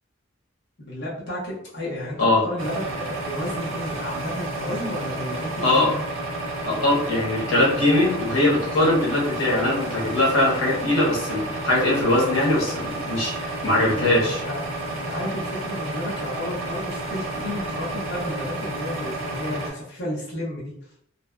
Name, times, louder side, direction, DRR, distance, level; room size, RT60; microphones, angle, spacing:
voice 1, 0.8-6.1 13.8-13.9 14.1-14.6 14.9-20.7, left 1 dB, 55° left, -7 dB, 0.6 m, -32 dB
sound 1, 2.6-19.7, right 2 dB, 75° right, 0.7 m, -31 dB
voice 2, 5.6-5.9 6.6-14.4, left 1 dB, 85° left, -5 dB, 0.9 m, -21 dB
2.6 x 2.1 x 2.3 m, 0.70 s
head